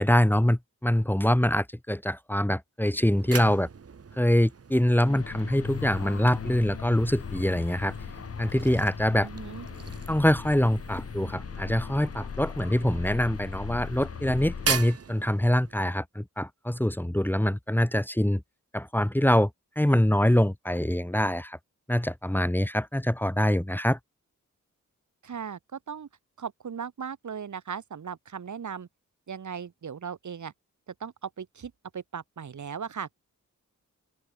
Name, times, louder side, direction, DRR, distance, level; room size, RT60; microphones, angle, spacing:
voice 1, 0.0-3.7 4.2-7.9 8.4-9.3 10.1-18.4 18.7-19.5 19.7-21.6 21.9-24.0, left 1 dB, 5° left, 1.6 m, -24 dB
sound 1, 2.9-15.9, right 6 dB, 50° right, 1.3 m, -39 dB
sound 2, 5.0-14.8, left 6 dB, 50° left, 0.9 m, -38 dB
voice 2, 9.2-9.7 25.2-26.1 26.4-28.9 29.3-30.5 30.9-33.1, right 7 dB, 70° right, 1.6 m, -38 dB
open air
wide cardioid pair, 80°, 31 cm